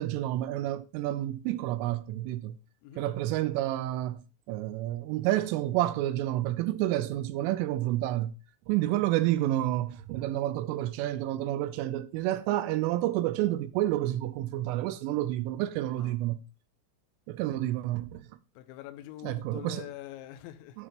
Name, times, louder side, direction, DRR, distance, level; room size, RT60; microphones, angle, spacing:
voice 1, 0.0-2.6 3.0-8.3 8.7-16.4 17.3-18.3 19.2-19.9 20.8-20.9, right 14 dB, 85° right, 3.0 m, -29 dB
voice 2, 18.6-20.9, left 14 dB, 85° left, 2.7 m, -45 dB
10.0 x 4.5 x 5.1 m
omnidirectional pair, 5.9 m